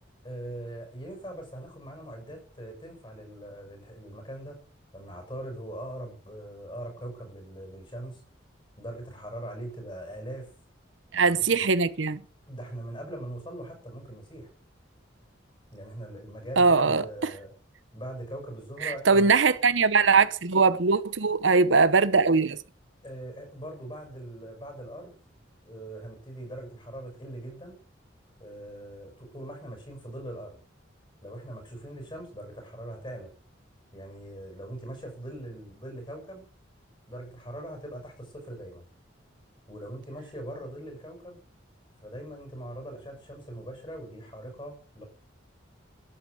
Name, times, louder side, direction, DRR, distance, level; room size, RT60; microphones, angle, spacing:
voice 1, 0.2-4.6 4.9-8.2 8.8-10.5 11.2-11.6 12.5-14.5 15.7-17.5 17.9-19.3 23.0-25.2 25.6-27.8 28.4-30.6 31.2-33.3 33.9-36.5 37.1-38.8 39.7-41.4 42.0-45.0, right 1 dB, 25° left, 6.2 m, -41 dB
voice 2, 11.1-12.2 16.6-17.0 18.8-22.6, right 4 dB, 75° right, 0.9 m, -21 dB
13.0 x 8.9 x 7.9 m
head